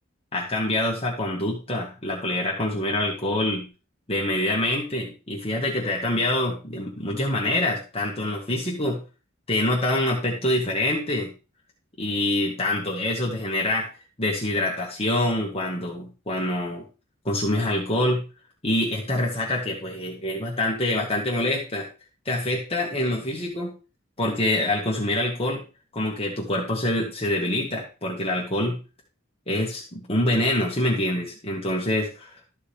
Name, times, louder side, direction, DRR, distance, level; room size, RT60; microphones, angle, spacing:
voice 1, 0.3-3.6 4.1-9.0 9.5-11.3 12.0-13.9 14.2-16.8 17.2-18.2 18.6-21.9 22.2-23.7 24.2-25.6 25.9-28.8 29.5-32.3, left 1 dB, 30° left, -2 dB, 1.8 m, -25 dB
13.0 x 5.5 x 3.4 m, 0.32 s
head